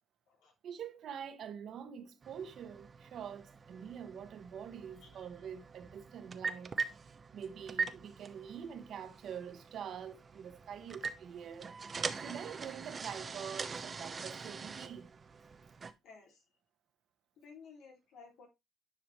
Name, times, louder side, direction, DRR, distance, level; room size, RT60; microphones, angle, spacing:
voice 1, 0.6-6.7 7.3-11.7 12.1-15.1, right 8 dB, 70° right, 1.2 m, -45 dB
sound 1, 2.2-15.9, right 5 dB, 40° right, 0.8 m, -43 dB
voice 2, 16.0-16.4 17.4-18.5, left 5 dB, 85° left, 3.0 m, -55 dB
10.0 x 4.9 x 3.1 m
cardioid pair, 90°, 0 cm